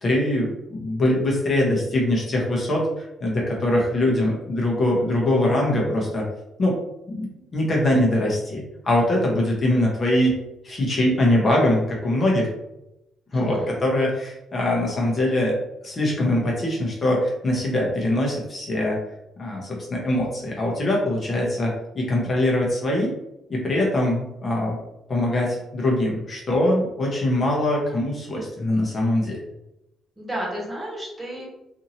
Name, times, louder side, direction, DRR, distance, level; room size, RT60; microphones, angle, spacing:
voice 1, 0.0-6.3 6.6-6.8 7.1-10.4 10.6-12.5 13.3-15.6 15.8-19.0 19.4-23.1 23.5-24.8 25.1-29.4, left 1 dB, 40° left, -3 dB, 0.8 m, -22 dB
voice 2, 13.3-13.7 30.2-31.5, right 1 dB, 15° right, -4 dB, 1.2 m, -32 dB
2.7 x 2.6 x 2.8 m, 0.88 s
cardioid pair, 90°, 0 cm